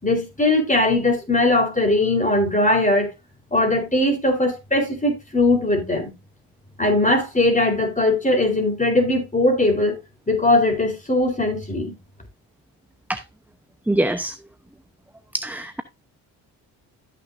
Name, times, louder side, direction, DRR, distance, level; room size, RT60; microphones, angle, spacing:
voice 1, 0.0-3.1 3.5-6.1 6.8-10.0 10.3-11.9, left 2 dB, 15° left, 4.0 m, -20 dB
voice 2, 13.9-14.3 15.3-15.8, right 1 dB, 5° right, 0.9 m, -23 dB
13.5 x 6.3 x 2.6 m
hypercardioid pair, 55°, 44 cm